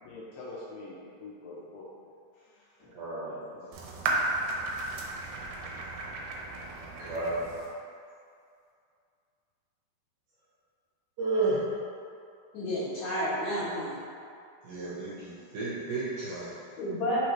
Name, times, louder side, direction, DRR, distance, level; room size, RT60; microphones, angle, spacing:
voice 1, 0.0-2.9 3.2-4.1, left 2 dB, 80° left, -5 dB, 2.1 m, -46 dB
voice 2, 2.9-3.4 5.5-5.8 7.0-7.5 11.2-11.7 14.6-16.6, right 3 dB, 70° right, -9 dB, 2.2 m, -32 dB
sound 1, 3.7-7.7, right 2 dB, 85° right, 2.4 m, -34 dB
voice 3, 12.5-13.9 16.8-17.3, equal, 55° left, -12 dB, 2.2 m, -30 dB
5.5 x 3.1 x 3.0 m, 2.4 s
omnidirectional pair, 4.2 m